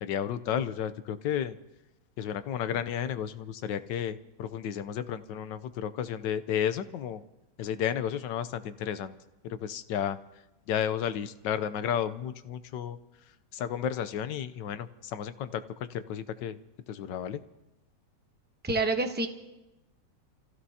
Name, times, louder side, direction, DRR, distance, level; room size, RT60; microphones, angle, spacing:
voice 1, 0.0-1.5 2.2-7.2 7.6-9.1 9.6-10.2 10.7-13.0 13.6-14.9 15.1-15.5 15.9-16.6 16.9-17.4, left 9 dB, 80° left, 12 dB, 1.4 m, -32 dB
voice 2, 18.6-19.3, right 3 dB, 10° right, 5 dB, 0.6 m, -27 dB
29.5 x 15.5 x 2.8 m, 0.99 s
omnidirectional pair, 1.9 m